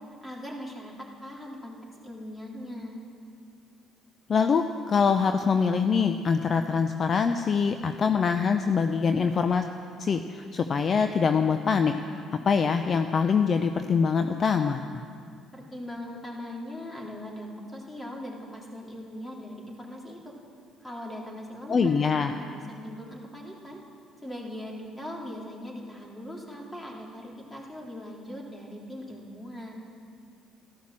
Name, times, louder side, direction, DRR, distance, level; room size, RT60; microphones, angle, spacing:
voice 1, 0.2-1.8 2.0-3.0 15.5-20.3 20.8-23.8 24.2-29.7, left 1 dB, 15° left, -2 dB, 3.5 m, -40 dB
voice 2, 4.3-9.7 10.0-15.0 21.7-22.3, left 5 dB, 45° left, 7 dB, 0.6 m, -24 dB
12.5 x 12.5 x 7.4 m, 2.3 s
supercardioid pair, 65°, 0 cm